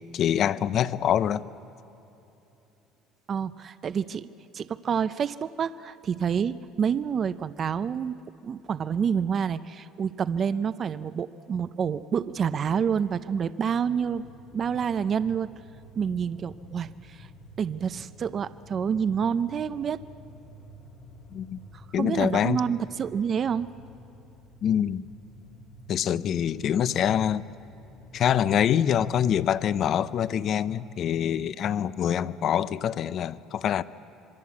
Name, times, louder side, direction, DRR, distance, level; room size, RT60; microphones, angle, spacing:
voice 1, 0.1-1.5 21.3-21.6 21.9-22.6 24.6-25.0 25.9-27.5 28.1-33.8, left 9 dB, 45° left, 16 dB, 0.6 m, -25 dB
voice 2, 3.3-4.3 4.5-8.2 8.4-15.5 16.0-17.3 17.6-20.0 21.7-23.7, right 7 dB, 35° right, 13 dB, 0.5 m, -28 dB
sound 1, 14.1-30.4, left 1 dB, 65° left, 2.0 m, -50 dB
27.0 x 22.5 x 8.5 m, 3.0 s
cardioid pair, 135°, 0 cm